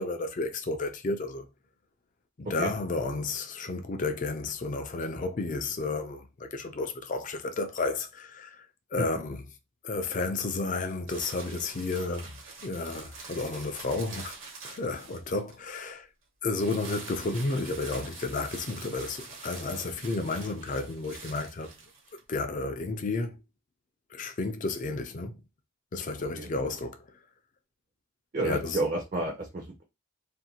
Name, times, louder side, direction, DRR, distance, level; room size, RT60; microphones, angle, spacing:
voice 1, 0.0-1.5 2.4-9.4 9.8-14.4 14.6-16.1 16.4-21.7 22.3-23.4 24.1-25.4 25.9-27.0 28.4-28.8, left 3 dB, 40° left, 0.4 m, -32 dB
sound 1, 11.1-15.7 16.6-22.2, right 4 dB, 70° right, 0.9 m, -45 dB
voice 2, 28.3-29.8, right 2 dB, 40° right, 0.5 m, -30 dB
2.6 x 2.1 x 2.8 m
head